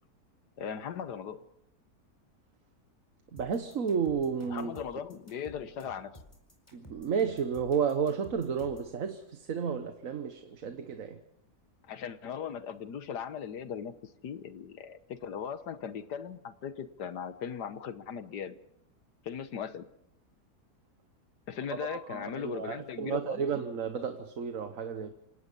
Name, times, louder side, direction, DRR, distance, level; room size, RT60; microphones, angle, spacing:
voice 1, 0.6-1.4 4.5-6.1 11.9-18.5 19.2-19.9 21.5-23.5, left 8 dB, 85° left, 1.7 m, -38 dB
voice 2, 3.3-4.7 6.7-11.2 21.8-25.1, right 6 dB, 55° right, 1.5 m, -32 dB
sound 1, 3.4-8.9, equal, 15° left, 4.7 m, -53 dB
27.5 x 17.5 x 5.5 m
omnidirectional pair, 1.7 m